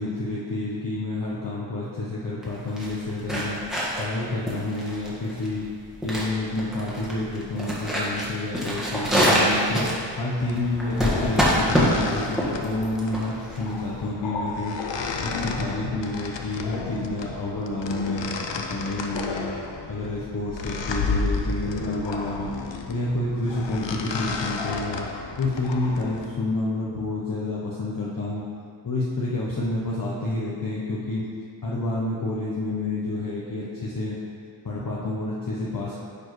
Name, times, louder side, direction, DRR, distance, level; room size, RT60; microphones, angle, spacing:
voice 1, 0.0-3.6 4.0-5.7 6.0-9.9 10.2-14.8 15.2-19.5 19.9-22.5 22.9-25.1 25.4-28.4 28.8-31.2 31.6-34.2 34.6-36.0, left 2 dB, 50° left, -6 dB, 0.9 m, -29 dB
sound 1, 2.4-14.1, equal, ahead, 1.5 m, -25 dB
sound 2, 10.4-26.3, left 4 dB, 75° left, 0.6 m, -32 dB
9.6 x 4.4 x 3.2 m, 2.4 s
wide cardioid pair, 60°, 44 cm